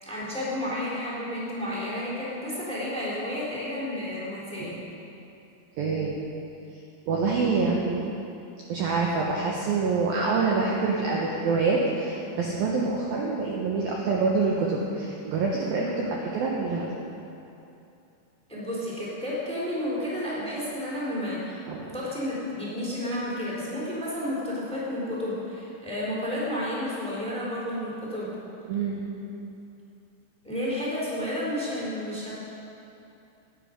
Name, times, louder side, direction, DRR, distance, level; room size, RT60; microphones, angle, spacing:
voice 1, 0.0-4.8 18.5-28.4 30.4-32.4, left 1 dB, ahead, -6 dB, 2.6 m, -31 dB
voice 2, 5.8-6.2 7.1-8.1 8.7-16.9 21.7-21.9 28.7-29.0, right 4 dB, 80° right, -2 dB, 2.1 m, -26 dB
17.5 x 10.5 x 5.2 m, 2.8 s
omnidirectional pair, 5.8 m